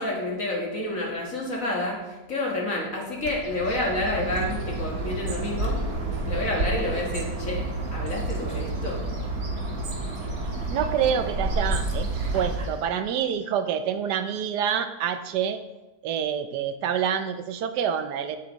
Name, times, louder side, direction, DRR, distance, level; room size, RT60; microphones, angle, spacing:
voice 1, 0.0-2.0 2.3-5.8 6.3-7.6 7.9-9.0, left 2 dB, 55° left, -2 dB, 2.0 m, -29 dB
Bird, 3.2-12.9, right 2 dB, 65° right, 1.9 m, -30 dB
voice 2, 10.7-12.1 12.3-15.6 16.0-18.4, right 8 dB, 90° right, 9 dB, 1.3 m, -27 dB
8.3 x 8.3 x 4.0 m, 1.1 s
omnidirectional pair, 1.7 m